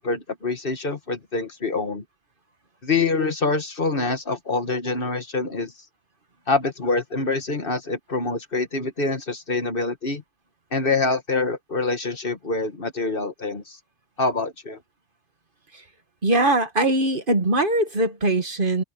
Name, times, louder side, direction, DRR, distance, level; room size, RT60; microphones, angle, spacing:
voice 1, 0.0-2.0 2.8-5.7 6.5-10.2 10.7-13.8 14.2-14.8, left 3 dB, 50° left, 1.8 m, -25 dB
voice 2, 16.2-18.8, right 2 dB, 45° right, 1.8 m, -21 dB
omnidirectional pair, 1.2 m